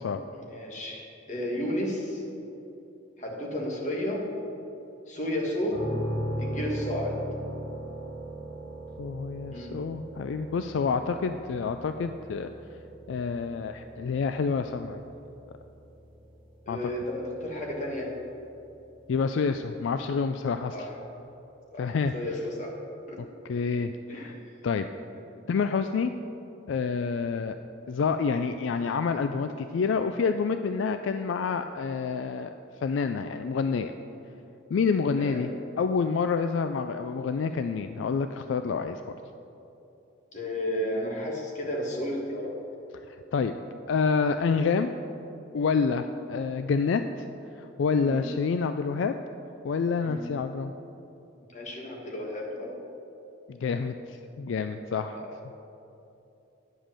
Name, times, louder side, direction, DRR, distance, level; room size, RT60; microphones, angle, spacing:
voice 1, 0.3-2.2 3.2-4.2 5.1-5.8 6.4-7.2 9.5-9.7 16.6-18.1 20.7-20.9 21.7-22.8 23.1-23.2 24.1-24.4 33.7-33.8 35.2-35.4 40.3-42.6 48.0-48.3 50.0-50.2 51.5-52.8 55.1-55.3, left 1 dB, 40° left, -1 dB, 1.5 m, -33 dB
sound 1, 5.7-19.4, equal, 90° left, 2.2 m, -39 dB
voice 2, 9.0-12.5 13.1-15.0 16.7-16.8 19.1-20.9 21.8-22.1 23.2-24.3 24.6-24.9 25.5-26.1 26.7-27.6 27.9-32.5 32.8-33.9 34.7-35.5 35.8-39.1 43.1-43.5 43.9-44.9 45.5-47.0 47.6-49.1 49.6-50.7 53.5-55.2, left 5 dB, 70° left, 9 dB, 0.3 m, -28 dB
9.9 x 5.2 x 7.4 m, 2.9 s
head